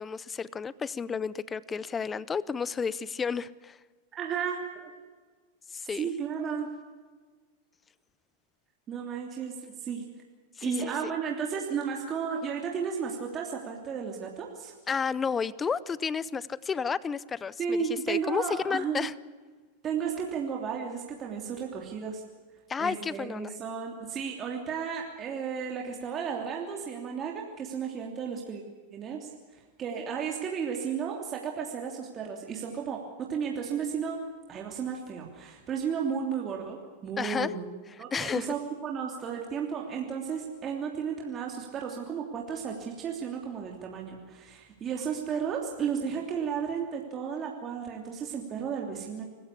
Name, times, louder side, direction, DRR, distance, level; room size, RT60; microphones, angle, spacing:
voice 1, 0.0-3.8 5.7-6.1 10.6-11.1 14.9-17.8 18.1-19.1 22.7-23.5 37.2-37.5 38.1-38.5, left 6 dB, 20° left, 20 dB, 0.7 m, -31 dB
voice 2, 4.2-4.9 6.0-6.7 8.9-10.1 10.6-14.7 17.6-19.1 19.8-22.2 22.8-28.6 28.9-29.3 29.8-34.2 34.5-37.7 38.0-49.2, right 7 dB, 30° right, 0 dB, 3.1 m, -33 dB
25.0 x 15.0 x 8.5 m, 1.4 s
hypercardioid pair, 120°, 0 cm